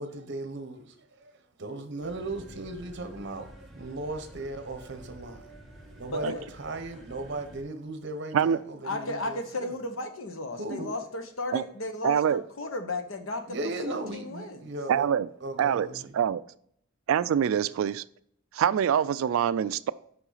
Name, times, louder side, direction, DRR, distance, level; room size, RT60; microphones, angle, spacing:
voice 1, 0.0-5.5 5.9-9.8 10.6-10.9 13.5-15.1 15.4-16.1, right 2 dB, 60° right, 1.0 m, -37 dB
sound 1, 2.0-7.6, right 1 dB, ahead, 1.4 m, -49 dB
voice 2, 8.8-14.7, left 2 dB, 75° left, 1.0 m, -34 dB
voice 3, 12.0-12.4 14.9-15.3 15.6-15.9 16.1-16.4 17.1-18.0 18.5-19.9, right 8 dB, 80° right, 0.3 m, -25 dB
5.9 x 5.6 x 3.9 m
head